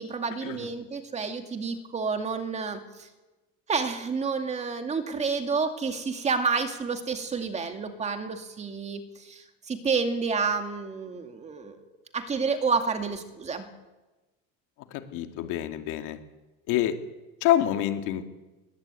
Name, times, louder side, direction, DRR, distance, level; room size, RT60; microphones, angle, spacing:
voice 1, 0.0-3.1 3.7-11.8 12.1-13.7, right 5 dB, 20° right, 6 dB, 2.4 m, -29 dB
voice 2, 14.9-16.2 16.7-16.9 17.4-18.2, left 12 dB, 65° left, 6 dB, 2.5 m, -26 dB
21.0 x 19.5 x 9.1 m, 1.1 s
cardioid pair, 160°, 32 cm